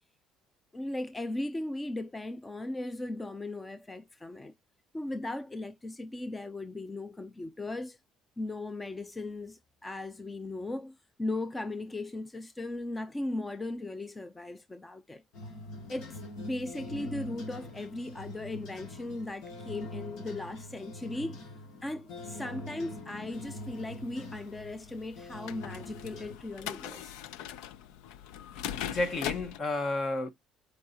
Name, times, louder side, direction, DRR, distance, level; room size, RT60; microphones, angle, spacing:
voice 1, 0.7-4.5 4.9-8.0 8.4-15.2 15.9-21.5 21.8-27.1, left 2 dB, 15° left, 0.5 m, -37 dB
sound 1, 15.3-26.4, left 1 dB, 70° left, 2.1 m, -44 dB
sound 2, 23.3-29.6, left 10 dB, 90° left, 0.5 m, -41 dB
voice 2, 28.8-30.3, left 2 dB, 45° left, 1.4 m, -31 dB
7.3 x 4.7 x 2.8 m
cardioid pair, 110°, 0 cm